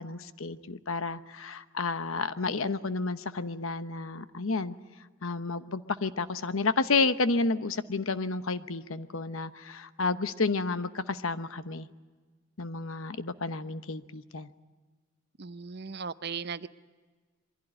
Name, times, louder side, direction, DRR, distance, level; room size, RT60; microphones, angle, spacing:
voice 1, 0.0-4.7 5.2-11.9 12.6-14.5, left 3 dB, 70° left, 12 dB, 1.0 m, -31 dB
voice 2, 15.4-16.7, right 5 dB, 50° right, 14 dB, 0.7 m, -37 dB
23.5 x 16.0 x 9.9 m, 1.4 s
head